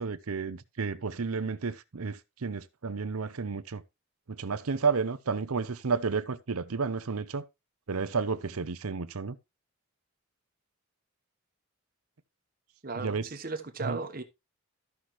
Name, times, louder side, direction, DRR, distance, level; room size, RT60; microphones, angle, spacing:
voice 1, 0.0-3.8 4.3-7.4 7.9-9.4 12.9-13.3 13.8-14.0, right 5 dB, 75° right, 0.7 m, -31 dB
voice 2, 12.8-14.2, right 3 dB, 40° right, 1.0 m, -36 dB
13.5 x 5.9 x 3.0 m
head